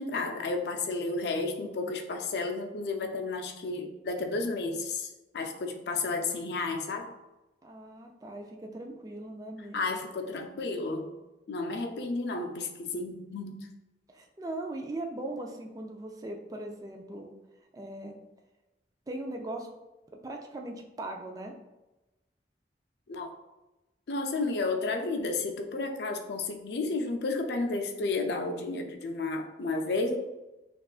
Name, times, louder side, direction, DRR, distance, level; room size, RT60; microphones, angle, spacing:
voice 1, 0.0-7.1 9.7-11.1 11.5-13.7 23.1-23.3 24.1-30.2, left 3 dB, 65° left, 4 dB, 0.5 m, -32 dB
voice 2, 7.6-10.0 14.1-17.3 17.7-18.2 19.1-19.7 20.2-21.5, right 1 dB, 20° right, 2 dB, 0.3 m, -39 dB
5.9 x 2.4 x 2.4 m, 1.0 s
head